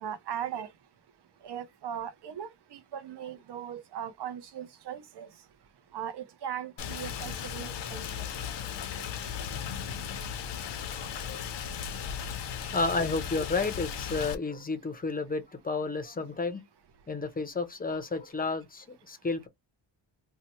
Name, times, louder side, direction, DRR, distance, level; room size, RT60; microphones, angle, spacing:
voice 1, 0.0-0.7 1.4-5.3 5.9-8.2, right 9 dB, 60° right, 0.6 m, -39 dB
Rain, 6.8-14.3, left 8 dB, 65° left, 0.7 m, -36 dB
voice 2, 10.9-11.5 12.7-16.6 17.1-19.5, left 3 dB, 20° left, 0.5 m, -32 dB
2.8 x 2.1 x 4.1 m
wide cardioid pair, 160°, 45 cm